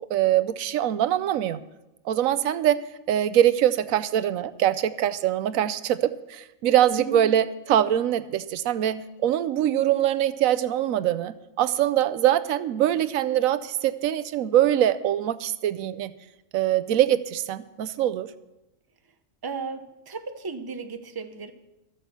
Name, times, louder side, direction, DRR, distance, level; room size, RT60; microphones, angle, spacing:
voice 1, 0.1-1.6 2.1-2.8 3.1-7.4 7.7-16.1 16.5-18.3, right 11 dB, 90° right, 14 dB, 1.0 m, -23 dB
voice 2, 19.4-21.5, right 5 dB, 20° right, 7 dB, 0.8 m, -35 dB
14.0 x 8.5 x 7.0 m, 0.96 s
omnidirectional pair, 1.4 m